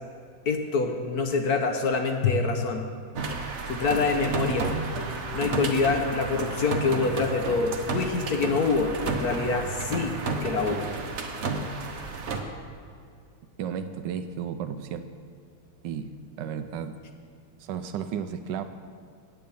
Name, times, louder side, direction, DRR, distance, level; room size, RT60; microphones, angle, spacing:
voice 1, 0.5-2.8 3.7-4.7 5.3-10.9, left 4 dB, 60° left, 4 dB, 1.0 m, -26 dB
sound 1, 3.1-12.4, right 3 dB, 50° right, 0.8 m, -32 dB
voice 2, 13.6-15.0 15.8-16.1 16.4-17.0 17.6-18.6, right 8 dB, 75° right, 9 dB, 1.0 m, -33 dB
9.3 x 8.6 x 7.0 m, 2.3 s
omnidirectional pair, 2.4 m